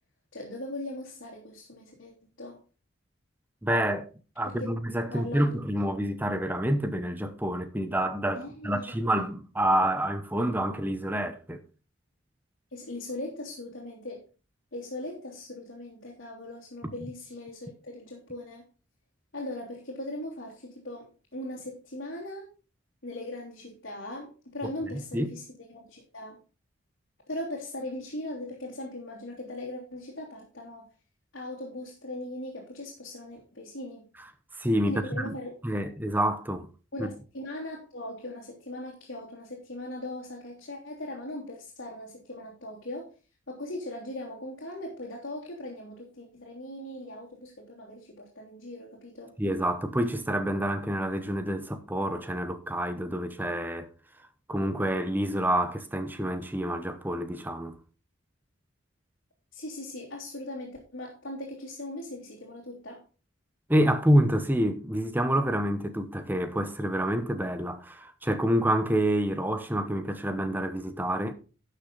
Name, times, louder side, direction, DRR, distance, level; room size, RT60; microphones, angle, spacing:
voice 1, 0.3-2.6 4.4-4.7 5.0-5.6 8.3-9.0 12.7-14.3 14.7-18.7 19.3-22.5 23.0-25.4 25.7-26.4 27.3-30.9 31.3-34.0 34.9-35.6 36.9-43.1 43.5-49.3 59.5-63.0, left 1 dB, 65° left, 3.3 m, -39 dB
voice 2, 3.6-4.1 4.4-11.6 25.1-25.3 34.5-35.3 35.6-36.7 37.0-37.1 49.4-53.9 54.5-57.8 63.7-71.3, right 1 dB, 10° right, 0.9 m, -27 dB
12.5 x 6.6 x 4.0 m
head